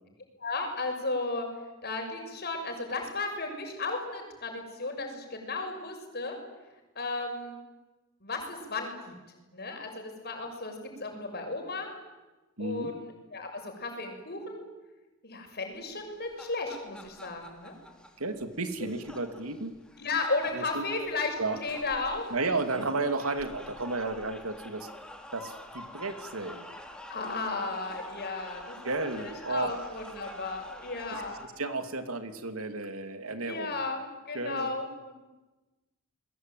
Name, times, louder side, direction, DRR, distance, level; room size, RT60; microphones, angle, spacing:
voice 1, 0.4-1.5 1.8-6.4 6.9-7.6 8.2-9.1 9.5-10.7 11.0-11.9 12.6-14.6 15.2-17.7 18.8-18.9 20.0-21.3 21.6-22.2 27.1-31.4 33.5-35.1, left 3 dB, 50° left, 4 dB, 6.6 m, -34 dB
voice 2, 12.6-12.9 18.2-19.7 20.5-20.9 21.4-21.6 22.3-24.9 25.3-26.7 28.8-29.8 31.1-33.8 34.3-34.7, right 3 dB, 90° right, 8 dB, 2.7 m, -33 dB
sound 1, 16.0-31.4, left 1 dB, 5° left, 3.0 m, -47 dB
30.0 x 21.5 x 9.2 m, 1.1 s
head